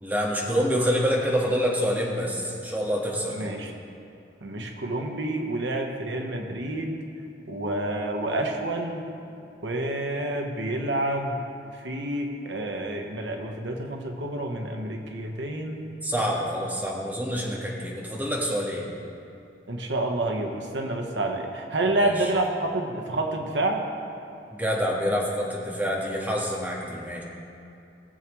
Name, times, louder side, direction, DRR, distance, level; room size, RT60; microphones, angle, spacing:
voice 1, 0.0-3.5 16.0-18.9 21.9-22.3 24.5-27.2, equal, 10° right, -3 dB, 1.5 m, -27 dB
voice 2, 3.3-3.7 4.4-7.0 7.5-9.0 9.6-11.3 11.8-15.9 19.7-23.8, right 1 dB, 85° right, 2 dB, 1.1 m, -28 dB
19.0 x 7.6 x 3.1 m, 2.6 s
head